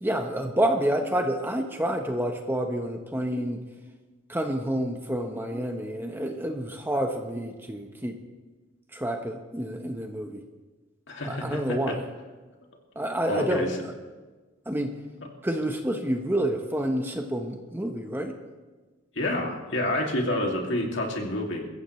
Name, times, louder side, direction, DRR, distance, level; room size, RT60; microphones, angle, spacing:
voice 1, 0.0-3.6 4.3-8.2 8.9-10.4 11.2-12.0 12.9-13.7 14.7-14.9 15.4-18.3, right 1 dB, 10° right, 3 dB, 1.0 m, -28 dB
voice 2, 11.1-12.0 13.3-13.8 19.1-21.6, left 1 dB, 60° left, 0 dB, 2.5 m, -28 dB
22.5 x 15.0 x 3.2 m, 1.3 s
head